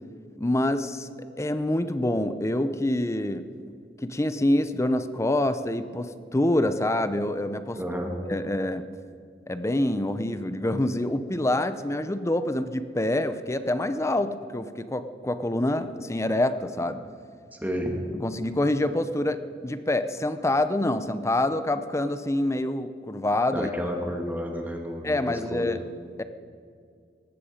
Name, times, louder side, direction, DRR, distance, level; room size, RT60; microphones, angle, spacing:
voice 1, 0.4-1.1 1.4-3.5 4.0-7.8 8.3-8.9 9.5-17.0 18.2-19.4 19.6-23.7 25.0-25.8 26.2-26.3, left 1 dB, 15° left, 11 dB, 0.7 m, -26 dB
voice 2, 7.7-8.1 17.5-17.9 23.5-25.7, equal, 10° right, 2 dB, 2.3 m, -31 dB
19.0 x 15.0 x 5.1 m, 2.2 s
head